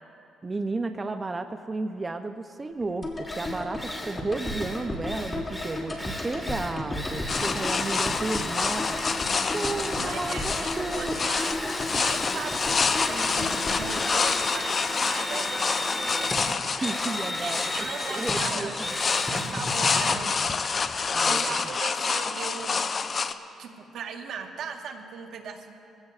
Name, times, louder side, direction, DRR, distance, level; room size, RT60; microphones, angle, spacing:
voice 1, 0.4-9.0 9.5-11.2 16.8-18.8 20.9-21.7, right 3 dB, 25° right, 7 dB, 0.5 m, -33 dB
Drill, 2.8-2.9 3.2-21.4, left 1 dB, 10° left, 1.6 m, -35 dB
sound 1, 3.0-15.2 15.5-15.6, left 2 dB, 25° left, 2.5 m, -35 dB
sound 2, 7.3-23.3, left 5 dB, 40° left, 0.6 m, -28 dB
voice 2, 10.0-11.5 11.9-16.6 17.3-18.7 19.2-20.4 21.2-22.8 23.6-25.7, right 6 dB, 75° right, 3 dB, 1.3 m, -38 dB
22.0 x 16.0 x 2.4 m, 2.8 s
cardioid pair, 90°, 0 cm